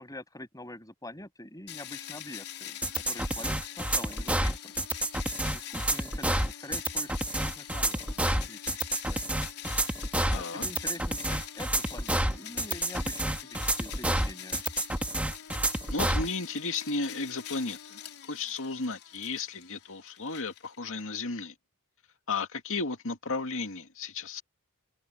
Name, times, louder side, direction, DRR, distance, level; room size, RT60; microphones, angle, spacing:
voice 1, 0.0-2.8 3.1-4.8 5.5-8.7 9.1-9.4 10.3-14.6, left 1 dB, 15° left, 7.0 m, -45 dB
sound 1, 1.7-21.0, left 10 dB, 90° left, 3.6 m, -44 dB
sound 2, 2.8-16.3, right 1 dB, 5° right, 1.5 m, -29 dB
voice 2, 10.3-10.6 15.9-21.5 22.3-24.4, left 3 dB, 65° left, 2.5 m, -34 dB
head